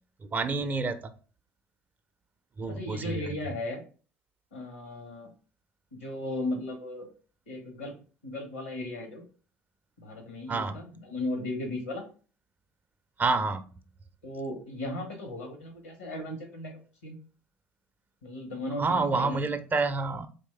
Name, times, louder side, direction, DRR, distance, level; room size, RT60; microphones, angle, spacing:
voice 1, 0.2-1.1 2.6-3.2 10.5-10.8 13.2-13.7 18.8-20.3, right 3 dB, 25° right, 11 dB, 0.5 m, -28 dB
voice 2, 2.7-3.8 4.5-5.3 5.9-7.1 7.5-7.9 8.2-9.2 10.0-12.0 14.2-17.2 18.2-19.4, left 1 dB, 85° left, 4 dB, 1.3 m, -36 dB
4.1 x 3.2 x 3.3 m, 0.38 s
hypercardioid pair, 65°, 7 cm